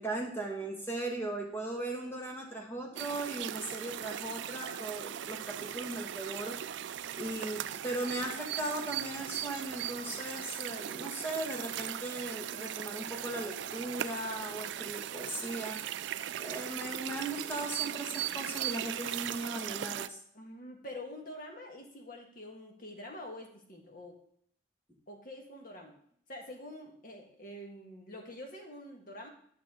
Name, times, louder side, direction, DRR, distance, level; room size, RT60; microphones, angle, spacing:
voice 1, 0.0-6.6 7.2-15.8 16.4-20.2, right 2 dB, 10° left, 0 dB, 1.6 m, -38 dB
sound 1, 3.0-20.1, right 11 dB, 70° right, 0.4 m, -38 dB
voice 2, 10.8-11.2 20.3-24.2 25.1-25.9 26.3-29.3, left 1 dB, 45° left, 2 dB, 1.5 m, -46 dB
10.5 x 5.9 x 3.7 m, 0.65 s
head